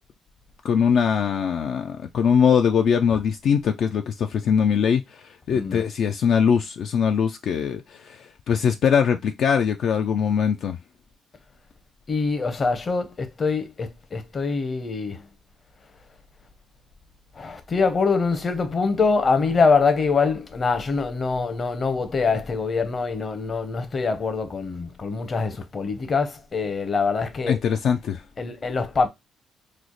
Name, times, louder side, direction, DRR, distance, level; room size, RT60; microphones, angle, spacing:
voice 1, 0.6-10.8 27.5-28.2, left 7 dB, 70° left, 0.3 m, -22 dB
voice 2, 5.5-5.8 12.1-15.3 17.3-27.6 28.4-29.1, left 4 dB, 40° left, 0.7 m, -24 dB
3.1 x 2.1 x 3.8 m
cardioid pair, 90°, 0 cm